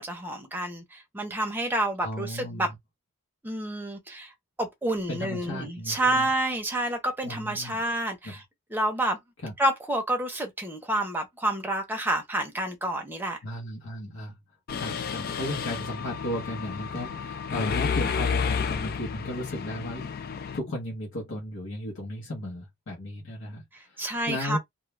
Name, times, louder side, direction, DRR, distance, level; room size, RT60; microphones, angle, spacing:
voice 1, 0.0-2.7 3.4-4.3 4.6-8.4 8.7-9.2 9.6-13.4 23.7-24.6, right 1 dB, 10° right, 0.6 m, -29 dB
voice 2, 2.0-2.7 5.1-6.3 7.2-7.8 8.2-8.4 9.4-9.5 13.4-14.3 14.7-20.1 20.5-24.6, left 1 dB, 70° left, 0.8 m, -35 dB
Mechanisms, 14.7-20.6, left 6 dB, 45° left, 0.3 m, -31 dB
2.3 x 2.1 x 3.1 m
head